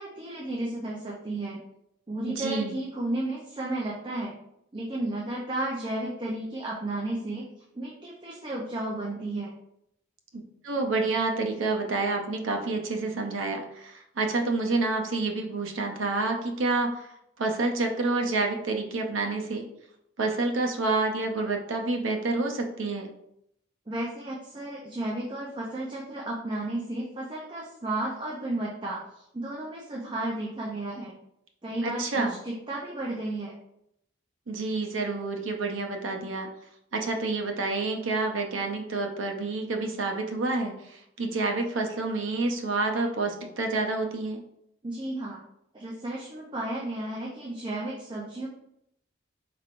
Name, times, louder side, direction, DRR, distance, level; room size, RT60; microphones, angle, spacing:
voice 1, 0.0-1.6 2.1-4.3 4.7-7.4 7.7-9.5 23.9-31.1 31.6-33.5 44.8-45.4 45.7-48.5, right 1 dB, 25° right, -3 dB, 0.5 m, -33 dB
voice 2, 2.3-2.8 10.6-19.6 20.2-23.1 31.8-32.4 34.5-36.5 36.9-44.4, right 3 dB, 85° right, 3 dB, 0.6 m, -28 dB
4.3 x 3.3 x 2.5 m, 0.77 s
head